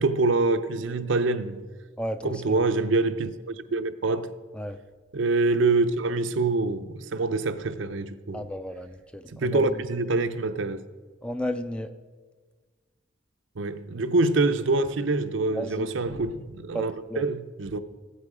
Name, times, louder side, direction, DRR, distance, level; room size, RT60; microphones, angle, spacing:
voice 1, 0.0-1.7 2.2-4.3 5.1-8.5 9.3-10.8 13.6-17.8, right 3 dB, 75° right, 0.6 m, -25 dB
voice 2, 2.0-2.6 4.5-4.8 8.3-9.8 11.2-11.9 15.5-15.9 16.7-16.8 17.1-17.2, equal, 5° left, 0.4 m, -33 dB
15.0 x 8.3 x 4.9 m
head